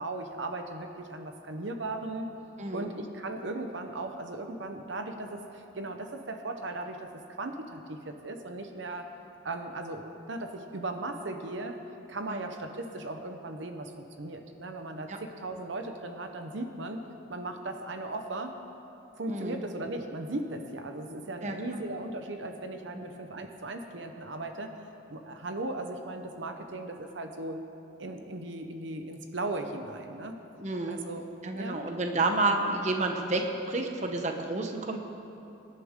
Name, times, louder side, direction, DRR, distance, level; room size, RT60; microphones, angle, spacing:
voice 1, 0.0-2.3 2.7-9.1 9.4-11.8 12.1-17.0 17.3-18.6 19.2-24.7 25.1-27.6 28.0-30.3 30.9-31.3 31.5-32.2, right 2 dB, 70° right, 5 dB, 0.9 m, -37 dB
voice 2, 19.3-19.6 21.4-21.5 23.0-23.1 30.6-31.0 31.4-35.0, right 2 dB, 35° right, 4 dB, 0.9 m, -30 dB
24.0 x 10.5 x 3.7 m, 2.9 s
head